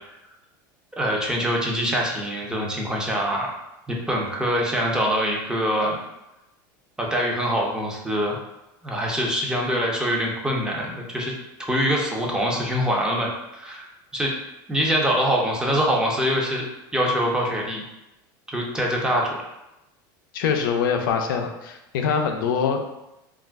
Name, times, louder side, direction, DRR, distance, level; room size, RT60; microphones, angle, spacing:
voice 1, 1.0-3.5 3.9-6.0 7.0-8.4 8.8-11.3 11.7-13.9 14.1-14.3 14.7-16.6 16.9-17.8 18.5-19.4, equal, 5° right, -2 dB, 0.6 m, -24 dB
voice 2, 20.3-22.8, left 6 dB, 85° left, 4 dB, 0.4 m, -24 dB
2.4 x 2.1 x 3.4 m, 0.91 s
supercardioid pair, 115°, 11 cm